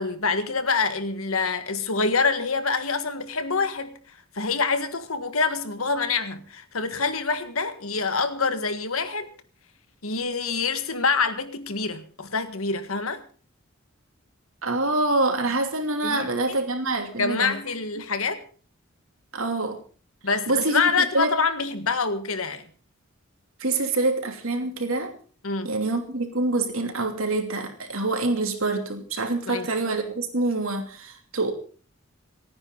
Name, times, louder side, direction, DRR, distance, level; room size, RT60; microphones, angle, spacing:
voice 1, 0.0-4.0 4.3-9.3 10.0-13.2 16.0-16.6 17.2-18.4 20.2-22.6 25.4-25.7 29.5-29.7, left 4 dB, 90° left, 9 dB, 1.7 m, -26 dB
voice 2, 14.6-17.6 19.3-19.8 20.5-20.8 21.1-21.3 23.6-25.1 25.6-31.5, right 2 dB, 80° right, 4 dB, 2.9 m, -26 dB
28.0 x 9.7 x 3.9 m, 0.41 s
head